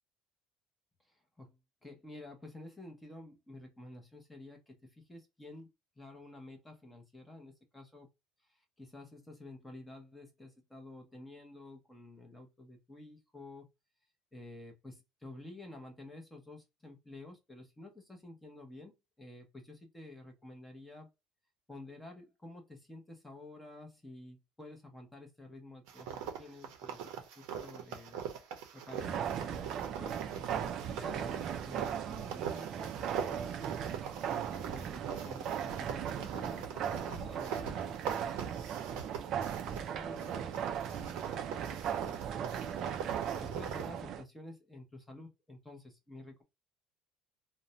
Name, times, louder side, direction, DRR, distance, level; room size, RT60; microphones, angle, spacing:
voice 1, 1.1-5.7 6.0-8.1 8.4-13.7 14.3-21.1 21.7-33.6 34.2-38.7 39.2-42.6 42.9-46.4, left 2 dB, 10° left, 0.7 m, -51 dB
sound 1, 25.9-39.9 40.2-44.0, right 7 dB, 90° right, 0.6 m, -43 dB
sound 2, 28.9-44.2, right 9 dB, 45° right, 0.3 m, -38 dB
2.5 x 2.1 x 2.8 m
cardioid pair, 150°, 0 cm